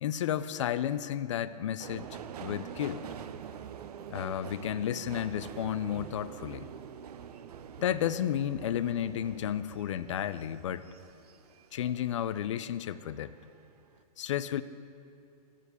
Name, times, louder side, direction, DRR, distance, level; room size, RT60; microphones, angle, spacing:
voice 1, 0.0-2.1 2.4-3.0 4.1-6.7 7.8-10.8 11.7-13.3 14.2-14.6, left 10 dB, 50° left, 14 dB, 0.4 m, -32 dB
Subway metro underground, 1.8-12.5 12.9-13.6 13.9-14.0, right 8 dB, 75° right, 0.6 m, -45 dB
11.5 x 4.9 x 8.0 m, 2.6 s
hypercardioid pair, 175°, 20 cm